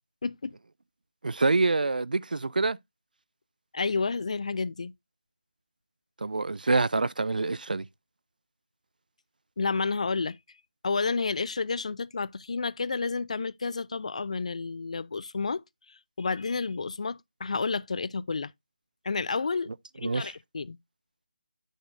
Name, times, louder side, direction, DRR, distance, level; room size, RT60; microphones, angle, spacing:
voice 1, 0.2-0.5 3.7-4.9 9.6-10.4 10.8-18.5 19.0-19.7 20.0-20.8, left 4 dB, 50° left, 0.3 m, -30 dB
voice 2, 1.2-2.8 6.2-7.8 20.0-20.3, right 3 dB, 80° right, 0.4 m, -26 dB
8.0 x 6.4 x 2.5 m
figure-of-eight pair, 165°, 5 cm